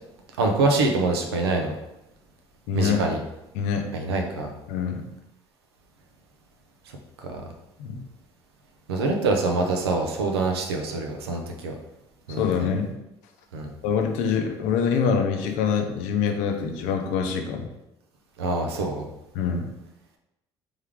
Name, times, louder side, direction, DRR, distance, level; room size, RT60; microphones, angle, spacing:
voice 1, 0.4-1.7 2.7-3.2 3.9-4.5 7.3-7.4 8.9-11.8 12.3-12.7 13.5-13.7 18.4-19.1, right 3 dB, 90° right, 3 dB, 0.6 m, -25 dB
voice 2, 2.7-3.0 3.5-3.9 4.7-5.0 7.8-8.0 12.4-12.9 13.8-17.7 19.3-19.7, left 6 dB, 75° left, 4 dB, 0.6 m, -25 dB
3.6 x 3.4 x 3.5 m, 0.93 s
hypercardioid pair, 60°, 13 cm